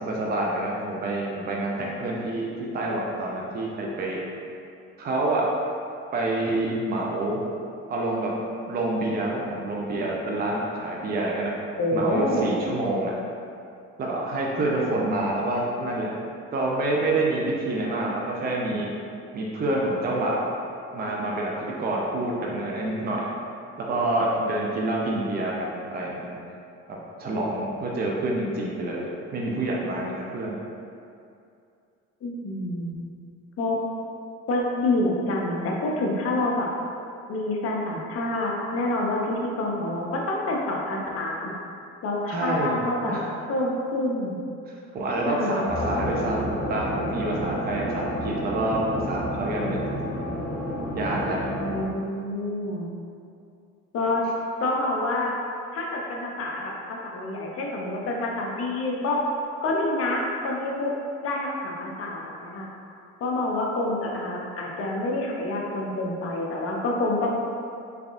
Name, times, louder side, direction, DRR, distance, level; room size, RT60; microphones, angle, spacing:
voice 1, 0.0-4.2 5.0-5.5 6.1-7.4 7.9-8.3 8.7-11.5 11.9-13.1 14.0-16.2 16.5-18.9 19.3-20.5 20.9-23.3 23.8-26.4 27.2-30.6 42.3-42.8 43.0-43.3 44.7-49.9 50.9-51.4, right 2 dB, 30° right, -3 dB, 0.5 m, -27 dB
voice 2, 11.8-12.5 32.2-32.9 33.6-33.8 34.5-36.7 37.3-41.5 42.0-43.2 43.5-44.4 45.3-45.5 51.5-52.9 53.9-54.2 54.6-55.3 55.7-59.2 59.6-60.9 61.2-62.7 63.2-67.3, left 2 dB, 45° left, -1 dB, 0.7 m, -27 dB
sound 1, 45.7-51.8, equal, ahead, 1.1 m, -30 dB
3.4 x 3.4 x 2.5 m, 2.5 s
supercardioid pair, 80°, 32 cm